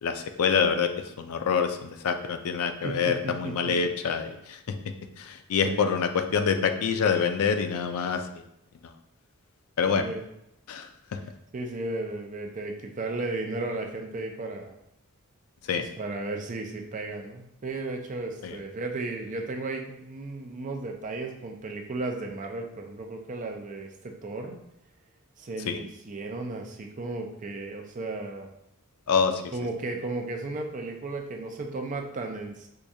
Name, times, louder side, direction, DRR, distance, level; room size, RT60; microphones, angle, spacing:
voice 1, 0.0-0.9 1.2-4.8 5.2-8.3 9.8-10.0 10.7-11.2 15.6-15.9 18.4-18.6 25.7-25.8 29.1-29.5, left 6 dB, 75° left, 7 dB, 0.4 m, -26 dB
voice 2, 2.8-3.8 5.6-5.9 9.9-10.2 11.5-14.8 15.8-24.6 25.4-28.5 29.5-32.7, right 2 dB, 35° right, 3 dB, 0.4 m, -34 dB
4.7 x 2.3 x 2.6 m, 0.79 s
head